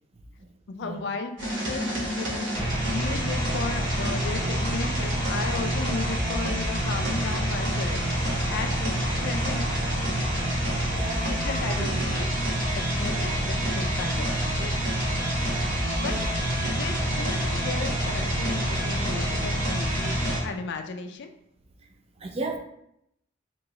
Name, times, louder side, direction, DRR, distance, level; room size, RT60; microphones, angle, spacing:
voice 1, 0.7-2.5 2.8-8.9 9.2-10.1 11.3-12.3 12.7-14.7 15.9-16.1 16.6-21.3, left 4 dB, 55° left, 7 dB, 0.4 m, -35 dB
sound 1, 1.4-20.4, right 1 dB, 60° right, 1.3 m, -27 dB
voice 2, 10.9-11.3 11.7-11.9 16.0-16.3 22.2-22.6, right 3 dB, 30° right, 4 dB, 0.4 m, -33 dB
3.0 x 3.0 x 3.6 m, 0.76 s
head